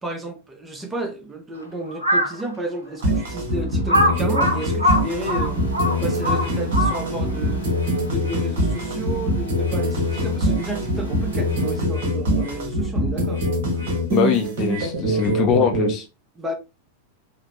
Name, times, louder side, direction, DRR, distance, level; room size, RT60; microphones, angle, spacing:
voice 1, 0.0-5.7 6.0-7.7 8.0-13.4 16.4-16.5, right 2 dB, 15° right, 0.7 m, -32 dB
Crow, 1.9-2.4 3.0-3.1 3.9-7.3, left 1 dB, 90° right, 0.5 m, -21 dB
sound 1, 3.0-15.9, equal, 55° right, 0.9 m, -23 dB
sound 2, 5.0-11.9, right 3 dB, 90° left, 0.8 m, -35 dB
voice 2, 14.1-16.0, left 8 dB, 35° left, 0.5 m, -22 dB
2.9 x 2.1 x 2.8 m
figure-of-eight pair, 90°, 0 cm